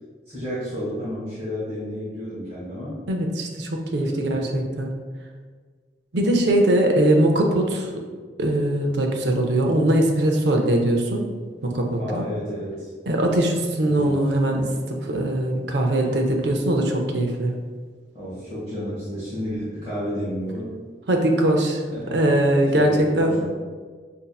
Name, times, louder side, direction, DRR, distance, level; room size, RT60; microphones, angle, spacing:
voice 1, 0.3-3.0 3.9-4.5 7.0-7.2 11.9-12.9 13.8-14.6 16.0-16.2 18.1-20.7 21.9-22.3 22.7-23.5, equal, 30° right, -11 dB, 1.1 m, -32 dB
voice 2, 3.1-4.9 6.1-7.9 8.4-11.2 11.6-12.2 13.1-17.5 21.1-21.8 22.1-23.4, right 1 dB, 70° right, 2 dB, 0.5 m, -21 dB
5.1 x 2.7 x 2.3 m, 1.5 s
head